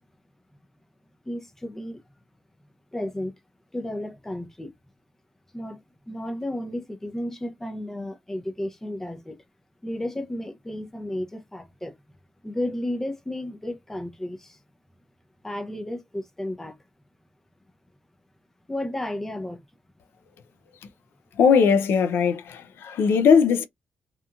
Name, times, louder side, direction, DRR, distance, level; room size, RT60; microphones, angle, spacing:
voice 1, 1.3-2.0 2.9-3.3 3.7-4.7 5.5-5.8 6.1-9.4 9.8-12.0 12.4-14.6 15.4-16.8 18.7-19.6, left 1 dB, 10° left, 0.5 m, -33 dB
voice 2, 21.4-23.7, left 6 dB, 85° left, 0.4 m, -19 dB
2.8 x 2.4 x 2.3 m
cardioid pair, 135°, 4 cm